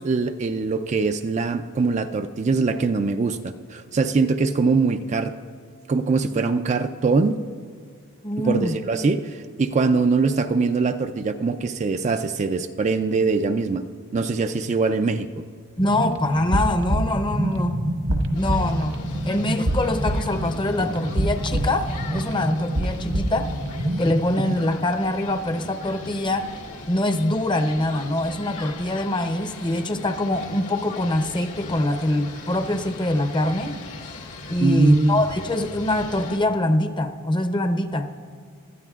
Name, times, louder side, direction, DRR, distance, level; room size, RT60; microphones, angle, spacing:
voice 1, 0.0-5.3 5.9-7.4 8.4-13.8 14.1-15.3 34.6-35.2, right 4 dB, 30° right, 8 dB, 0.4 m, -22 dB
voice 2, 8.2-8.7 15.8-17.8 18.3-19.0 19.2-23.5 24.0-26.5 26.9-33.7 34.5-38.1, left 1 dB, 20° left, 7 dB, 0.7 m, -24 dB
sound 1, 15.8-24.2, right 1 dB, 70° right, 1.3 m, -26 dB
sound 2, 18.3-36.4, left 2 dB, 75° left, 1.8 m, -39 dB
24.0 x 13.0 x 2.4 m, 2.1 s
head